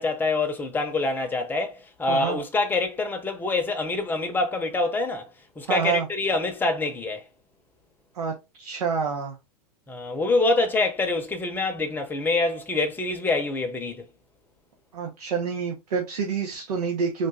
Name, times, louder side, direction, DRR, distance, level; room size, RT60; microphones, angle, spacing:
voice 1, 0.0-5.3 5.6-7.2 9.9-14.0, left 3 dB, 10° left, 0.8 m, -25 dB
voice 2, 2.1-2.4 5.7-6.1 8.1-8.3 8.6-9.3 14.9-17.3, right 6 dB, 85° right, 1.1 m, -27 dB
3.8 x 2.5 x 3.8 m
hypercardioid pair, 125°, 20 cm